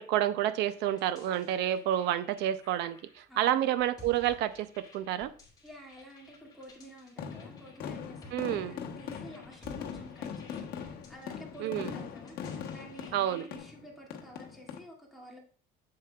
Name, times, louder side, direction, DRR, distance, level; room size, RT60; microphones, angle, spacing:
voice 1, 0.0-5.3 8.3-8.7 11.6-11.9 13.1-13.4, right 12 dB, 75° right, 13 dB, 0.6 m, -29 dB
sound 1, 0.6-13.6, left 1 dB, 20° left, 2.7 m, -56 dB
voice 2, 3.3-3.7 5.6-15.4, equal, ahead, -2 dB, 2.2 m, -50 dB
sound 2, 7.2-14.8, left 7 dB, 65° left, 1.2 m, -41 dB
7.6 x 7.5 x 2.4 m, 0.40 s
cardioid pair, 140°, 18 cm